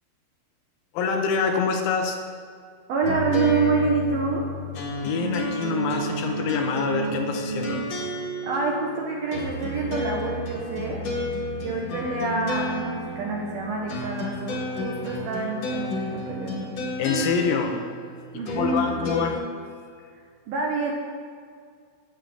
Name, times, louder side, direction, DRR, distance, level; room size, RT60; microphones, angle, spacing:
voice 1, 0.9-2.2 5.0-7.8 17.0-17.8 18.5-19.4, left 5 dB, 75° left, 4 dB, 3.3 m, -25 dB
voice 2, 2.9-4.5 8.4-11.0 11.6-16.7 18.3-18.9 20.1-20.9, right 4 dB, 70° right, -1 dB, 2.3 m, -27 dB
sound 1, 3.0-19.3, left 1 dB, 50° left, 2.2 m, -31 dB
11.5 x 7.4 x 9.2 m, 2.1 s
omnidirectional pair, 5.6 m